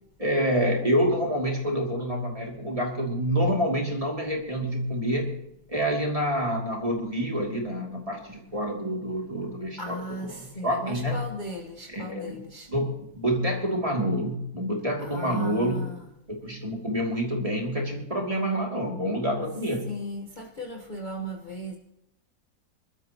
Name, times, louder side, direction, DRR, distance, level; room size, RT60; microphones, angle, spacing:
voice 1, 0.2-5.3 5.7-9.9 10.6-11.2 11.9-12.3 12.7-15.8 16.3-19.9, equal, 20° right, -1 dB, 2.8 m, -27 dB
voice 2, 9.8-12.7 15.0-16.1 19.9-21.8, equal, 30° left, 0 dB, 1.4 m, -37 dB
25.0 x 12.5 x 3.0 m, 0.83 s
omnidirectional pair, 2.0 m